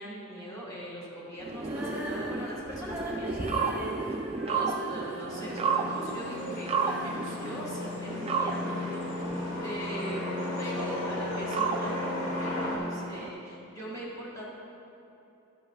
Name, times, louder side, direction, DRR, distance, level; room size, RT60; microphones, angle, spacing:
voice 1, 0.0-10.2 10.6-14.5, equal, 20° left, -6 dB, 1.8 m, -41 dB
sound 1, 1.4-13.3, right 5 dB, 30° right, 0.4 m, -34 dB
Female singing, 1.6-8.6 9.2-9.3, equal, 10° right, 1.5 m, -40 dB
sound 2, 5.3-12.8, left 1 dB, 60° left, 1.6 m, -35 dB
12.5 x 8.6 x 2.4 m, 2.9 s
head